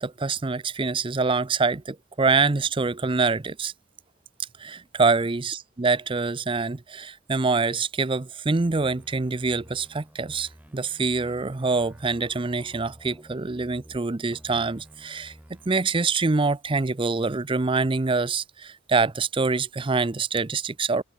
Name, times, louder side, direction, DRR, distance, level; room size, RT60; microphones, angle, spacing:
voice 1, 0.0-3.7 4.6-15.3 15.7-21.0, right 4 dB, 25° right, 0.5 m, -25 dB
sound 1, 8.5-14.0 14.3-15.7, equal, 10° right, 3.5 m, -51 dB
head